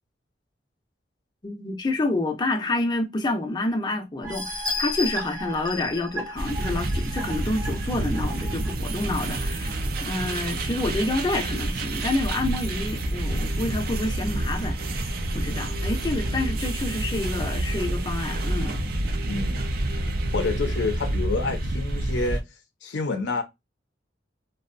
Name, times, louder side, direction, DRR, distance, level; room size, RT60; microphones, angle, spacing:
voice 1, 1.4-18.8, left 2 dB, 25° left, 0.5 m, -28 dB
sound 1, 4.2-8.7 9.2-9.3 9.7-9.8, left 1 dB, 20° right, 0.7 m, -33 dB
sound 2, 6.4-22.4, right 1 dB, 55° right, 0.4 m, -28 dB
sound 3, 7.9-21.6, equal, 75° right, 0.8 m, -38 dB
voice 2, 19.3-19.7 20.3-22.4 22.8-23.4, left 3 dB, 90° left, 0.5 m, -28 dB
2.6 x 2.0 x 2.4 m
head